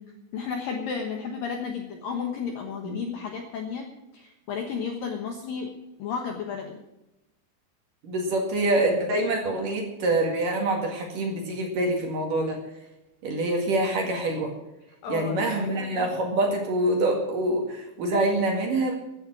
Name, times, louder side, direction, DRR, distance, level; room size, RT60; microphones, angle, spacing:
voice 1, 0.3-3.9 4.1-5.7 6.0-6.8 15.0-16.1, left 6 dB, 70° left, 2 dB, 2.2 m, -33 dB
voice 2, 8.0-12.6 13.2-14.5 15.1-19.0, right 1 dB, 50° right, 1 dB, 3.0 m, -25 dB
16.0 x 9.6 x 6.2 m, 0.97 s
omnidirectional pair, 5.7 m